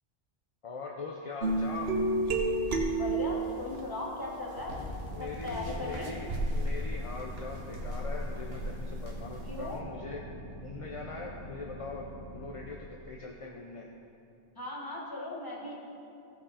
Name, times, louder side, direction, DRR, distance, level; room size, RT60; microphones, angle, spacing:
voice 1, 0.6-1.9 5.1-6.3 6.5-10.2 10.6-12.0 12.3-13.9, left 3 dB, 40° left, 0 dB, 0.6 m, -41 dB
sound 1, 1.4-3.8 4.5-9.8, right 2 dB, 70° right, 1.2 m, -32 dB
voice 2, 3.0-4.8 5.2-6.2 9.5-9.8 14.5-15.7, left 2 dB, 20° left, -3 dB, 1.6 m, -38 dB
sound 2, 4.7-12.7, equal, 85° left, 1.8 m, -44 dB
15.5 x 5.8 x 4.2 m, 2.7 s
omnidirectional pair, 1.1 m